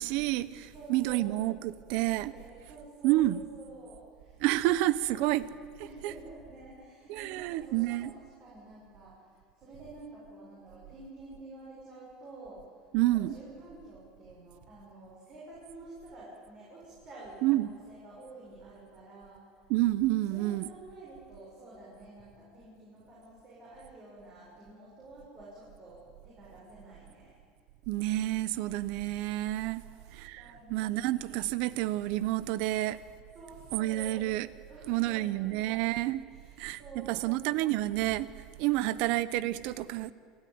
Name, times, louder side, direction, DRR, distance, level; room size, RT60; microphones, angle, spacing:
voice 1, 0.0-2.3 3.0-3.4 4.4-5.5 5.8-6.2 7.1-8.1 12.9-13.4 17.4-17.7 19.7-20.7 27.9-29.8 30.1-33.0 33.7-34.5 34.9-36.2 36.6-38.3 38.6-40.1, right 16 dB, 60° right, 0.8 m, -29 dB
voice 2, 0.7-1.4 2.0-4.5 5.0-5.2 5.8-19.5 20.3-27.3 29.8-31.3 33.3-34.2 34.7-35.9 36.3-37.6 38.7-39.0, right 2 dB, 35° right, 7.1 m, -50 dB
29.5 x 13.0 x 9.5 m
cardioid pair, 160°, 2 cm